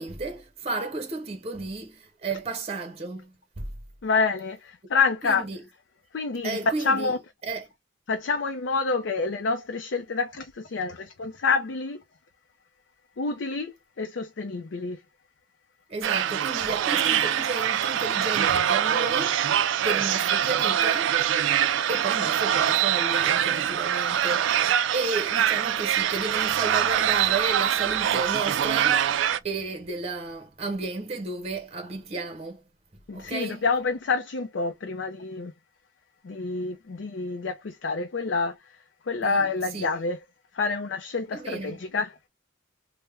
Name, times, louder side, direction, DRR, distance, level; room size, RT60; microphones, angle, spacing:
voice 1, 0.0-3.7 5.2-5.6 6.4-7.1 7.5-7.6 15.9-19.5 19.8-21.2 21.9-29.1 29.4-32.6 33.1-33.6 39.2-39.5 39.7-39.9 41.3-41.8, right 3 dB, 35° right, 0.7 m, -33 dB
voice 2, 4.0-5.4 6.1-7.2 8.1-12.0 13.2-15.0 33.1-35.5 36.2-40.2 40.5-42.2, left 4 dB, 65° left, 0.5 m, -28 dB
sound 1, 16.0-29.4, right 10 dB, 75° right, 0.3 m, -24 dB
3.3 x 2.1 x 3.2 m
head